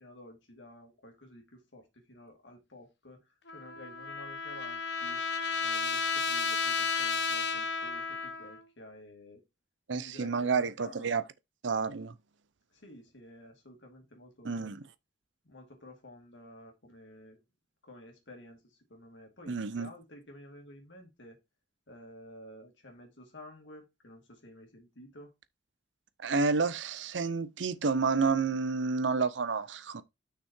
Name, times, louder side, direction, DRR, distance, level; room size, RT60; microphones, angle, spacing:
voice 1, 0.0-5.2 5.6-9.4 9.9-11.1 12.7-14.7 15.4-17.4 17.8-21.4 21.9-25.3, left 1 dB, 90° left, 2.6 m, -52 dB
Trumpet, 3.5-8.6, left 5 dB, 70° left, 1.2 m, -32 dB
voice 2, 9.9-11.2 11.6-12.1 14.4-14.8 19.5-19.9 26.2-30.0, right 4 dB, 85° right, 0.7 m, -30 dB
6.1 x 5.6 x 4.5 m
head